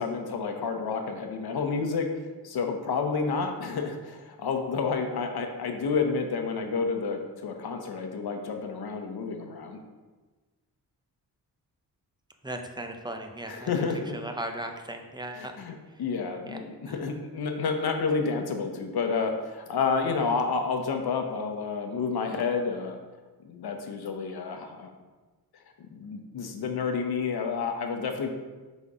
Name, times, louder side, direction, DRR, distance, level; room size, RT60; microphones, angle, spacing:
voice 1, 0.0-2.1 2.4-9.8 13.5-14.2 15.4-23.0 23.4-24.9 25.9-28.3, left 5 dB, 75° left, 4 dB, 0.9 m, -30 dB
voice 2, 12.4-13.7 14.1-15.5 15.9-16.0 16.5-16.6 16.9-17.0, right 1 dB, 10° right, 4 dB, 0.6 m, -37 dB
5.4 x 4.1 x 4.8 m, 1.3 s
wide cardioid pair, 110°, 38 cm